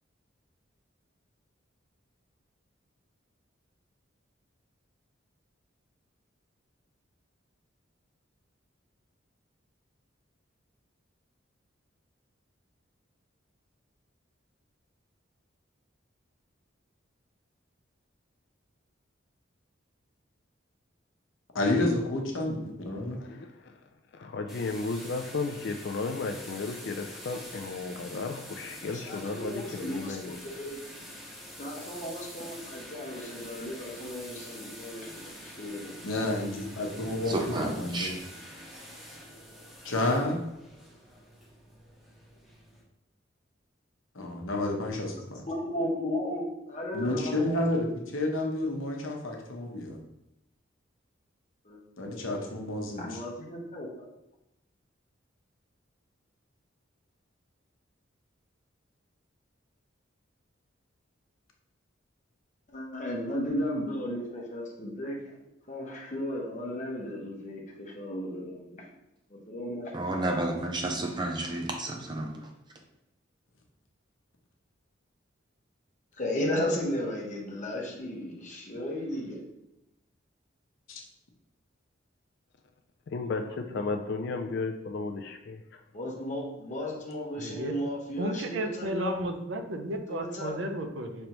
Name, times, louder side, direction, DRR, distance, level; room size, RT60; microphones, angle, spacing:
voice 1, 21.5-23.2 36.0-38.2 39.8-40.4 44.1-45.4 46.9-50.0 52.0-53.2 80.9-81.0, left 1 dB, 90° left, 1 dB, 0.9 m, -30 dB
voice 2, 23.2-23.7 24.1-30.4 83.1-85.8, left 3 dB, 55° left, 5 dB, 0.3 m, -34 dB
sound 1, 24.5-42.8, equal, ahead, 1.1 m, -46 dB
voice 3, 28.9-30.2 30.6-30.8 31.6-36.0 45.5-47.6 51.6-51.8 52.1-52.3 52.8-54.1 62.7-65.2 65.7-68.8 69.3-69.9 76.2-79.4 85.9-89.2 90.1-90.6, left 1 dB, 35° left, -2 dB, 1.0 m, -35 dB
voice 4, 37.3-38.1 69.9-72.4, right 2 dB, 20° right, 1 dB, 0.6 m, -31 dB
voice 5, 83.2-83.8 84.3-84.4 87.4-87.8 88.2-91.3, right 1 dB, 70° right, 5 dB, 0.5 m, -34 dB
5.3 x 3.3 x 3.0 m, 0.89 s
head